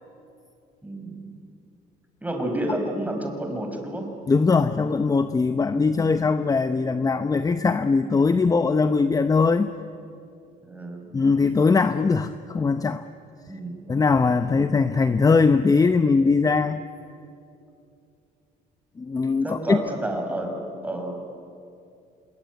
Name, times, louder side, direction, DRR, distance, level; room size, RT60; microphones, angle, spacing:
voice 1, 0.8-1.3 2.2-4.1 10.6-11.0 13.5-13.8 19.4-20.5 20.8-21.2, right 1 dB, 10° right, 3 dB, 5.2 m, -30 dB
voice 2, 4.3-9.7 11.1-13.0 13.9-16.8 19.0-19.8, left 4 dB, 20° left, 11 dB, 0.7 m, -21 dB
26.5 x 21.5 x 9.4 m, 2.6 s
cardioid pair, 110°, 17 cm